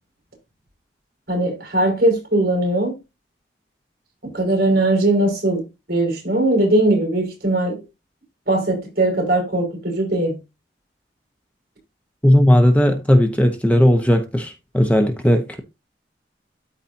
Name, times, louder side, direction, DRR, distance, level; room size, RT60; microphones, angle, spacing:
voice 1, 1.3-3.0 4.2-7.8 8.5-10.4, right 1 dB, 55° right, 5.1 m, -20 dB
voice 2, 12.2-15.6, equal, 10° left, 0.9 m, -16 dB
13.0 x 4.4 x 2.7 m
head